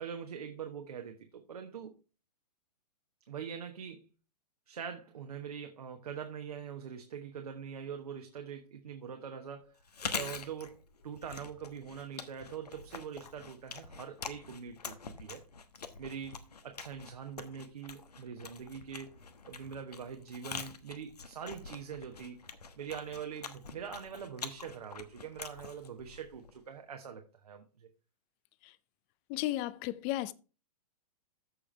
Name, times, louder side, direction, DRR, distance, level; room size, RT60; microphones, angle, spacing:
voice 1, 0.0-1.9 3.3-4.1 4.7-9.8 10.1-10.8 11.0-15.4 16.0-19.1 19.4-22.4 22.8-27.9, right 7 dB, 70° right, 1.2 m, -43 dB
Chewing mastication, 9.8-26.7, left 5 dB, 75° left, 1.1 m, -45 dB
voice 2, 29.3-30.3, left 15 dB, 30° left, 0.5 m, -34 dB
14.0 x 5.0 x 3.3 m
figure-of-eight pair, 115°, 20 cm